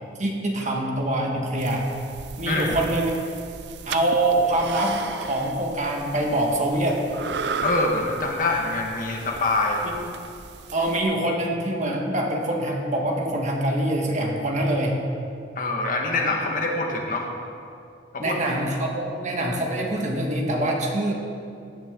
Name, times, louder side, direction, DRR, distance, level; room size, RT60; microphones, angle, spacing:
voice 1, 0.2-1.9 2.4-3.1 3.8-7.0 9.8-9.9 10.7-15.0 18.2-21.1, right 1 dB, 40° right, 0 dB, 1.7 m, -24 dB
sound 1, 1.6-11.0, right 5 dB, 70° right, 0.5 m, -36 dB
voice 2, 7.6-9.9 15.5-17.3 18.1-18.4, left 2 dB, 50° left, 0 dB, 1.6 m, -25 dB
16.5 x 10.0 x 3.8 m, 2.5 s
head